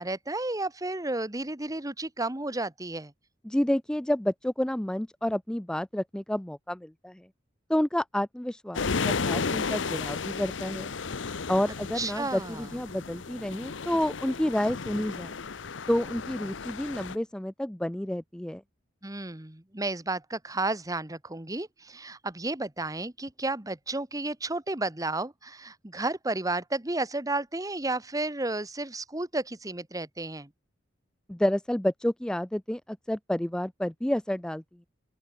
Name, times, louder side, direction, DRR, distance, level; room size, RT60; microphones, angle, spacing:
voice 1, 0.0-3.1 11.9-12.7 19.0-30.5, right 2 dB, 20° right, 1.6 m, -32 dB
voice 2, 3.4-7.3 7.7-10.9 11.5-15.4 15.9-18.6 31.3-34.6, left 1 dB, 5° left, 0.3 m, -29 dB
sound 1, 8.7-17.2, left 5 dB, 80° left, 0.8 m, -33 dB
open air
head